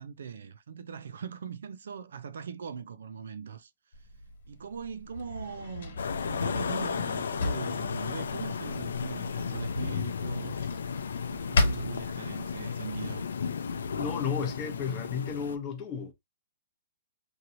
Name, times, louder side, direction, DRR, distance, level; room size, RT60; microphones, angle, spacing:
voice 1, 0.0-3.7 4.5-10.7 11.2-13.3, right 6 dB, 75° right, 0.3 m, -41 dB
Drawer open or close, 3.9-12.7, left 2 dB, 60° left, 1.4 m, -35 dB
sound 1, 6.0-15.6, left 6 dB, 90° left, 0.4 m, -34 dB
voice 2, 13.9-16.1, left 6 dB, 20° left, 0.7 m, -33 dB
3.0 x 2.7 x 2.5 m
hypercardioid pair, 170°, 0 cm